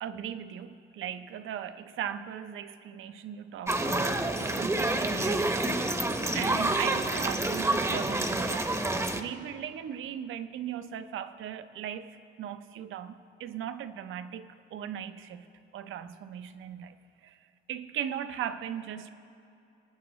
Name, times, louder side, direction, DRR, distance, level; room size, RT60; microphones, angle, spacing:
voice 1, 0.0-15.5 15.7-17.0 17.2-17.4 17.7-19.1, right 9 dB, 75° right, 11 dB, 0.6 m, -38 dB
sound 1, 3.7-9.2, right 2 dB, 15° right, 0.7 m, -28 dB
25.0 x 9.4 x 3.1 m, 2.8 s
cardioid pair, 100°, 21 cm